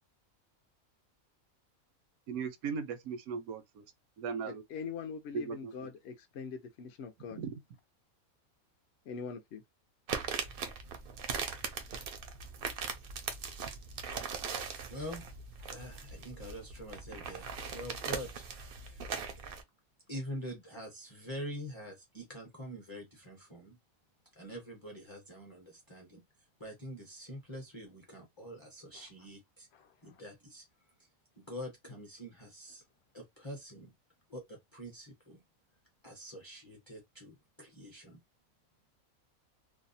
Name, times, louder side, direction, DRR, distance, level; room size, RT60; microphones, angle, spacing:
voice 1, 2.3-3.8 4.2-4.6 5.3-5.9 7.4-7.6, right 5 dB, 85° right, 1.0 m, -38 dB
voice 2, 4.5-7.4 9.1-9.6 28.9-29.0 29.7-30.2, left 6 dB, 65° left, 0.6 m, -43 dB
sound 1, 10.1-19.6, right 6 dB, 65° right, 0.5 m, -40 dB
voice 3, 14.5-15.2 15.6-18.5 18.8-19.0 20.1-23.8 24.3-26.2 26.6-29.7 30.0-30.6 31.4-32.8 33.1-33.9 34.3-35.4 36.0-38.2, equal, 30° left, 0.6 m, -45 dB
2.7 x 2.0 x 2.6 m
omnidirectional pair, 1.5 m